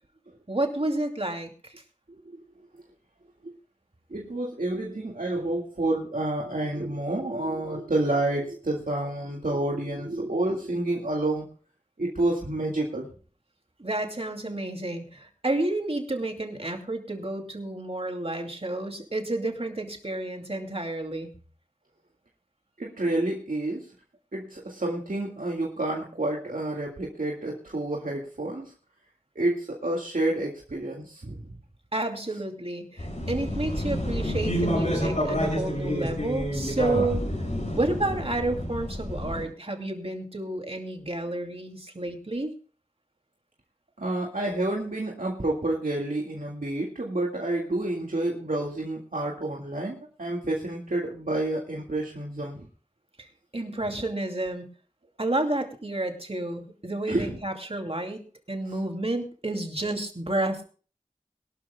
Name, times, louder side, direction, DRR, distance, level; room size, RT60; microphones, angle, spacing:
voice 1, 0.5-1.7 13.8-21.3 31.9-37.2 37.7-42.5 53.2-53.3 53.5-54.7 55.2-60.7, right 2 dB, 45° right, 4 dB, 2.5 m, -30 dB
voice 2, 4.1-11.5 12.0-13.1 22.8-23.9 24.3-28.7 29.4-31.5 44.0-52.7 57.1-57.4, right 2 dB, 85° right, -2 dB, 1.9 m, -29 dB
sound 1, 33.0-39.4, equal, 60° left, 6.2 m, -29 dB
22.5 x 12.5 x 2.2 m, 0.39 s
wide cardioid pair, 40°, 14 cm